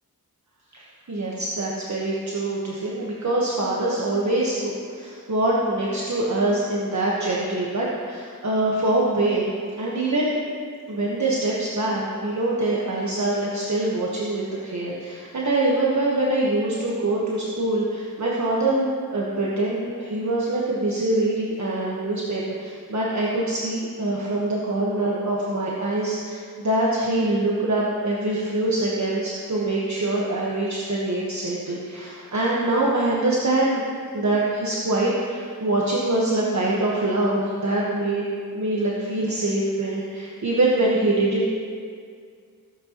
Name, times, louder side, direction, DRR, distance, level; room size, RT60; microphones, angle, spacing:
voice 1, 1.1-9.5 9.8-10.4 10.9-33.8 34.1-38.3 38.5-41.5, right 2 dB, 50° right, -5 dB, 1.3 m, -24 dB
16.5 x 8.3 x 3.0 m, 2.1 s
wide cardioid pair, 100°, 36 cm